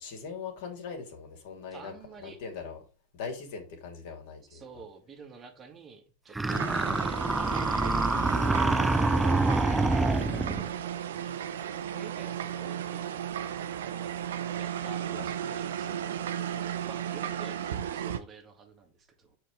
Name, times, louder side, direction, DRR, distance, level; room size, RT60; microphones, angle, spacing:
voice 1, 0.0-1.9 2.2-2.8 3.1-4.6 9.1-9.9 15.1-15.3, left 5 dB, 60° left, 3.1 m, -41 dB
voice 2, 1.7-2.4 4.5-6.7 7.3-8.4 11.9-13.3 13.9-14.1 14.5-16.1 16.6-19.4, right 5 dB, 30° right, 1.9 m, -49 dB
sound 1, 6.3-10.7, right 2 dB, 10° right, 0.4 m, -26 dB
sound 2, 6.5-18.2, right 10 dB, 70° right, 0.9 m, -34 dB
7.8 x 4.8 x 5.3 m
hypercardioid pair, 95°, 0 cm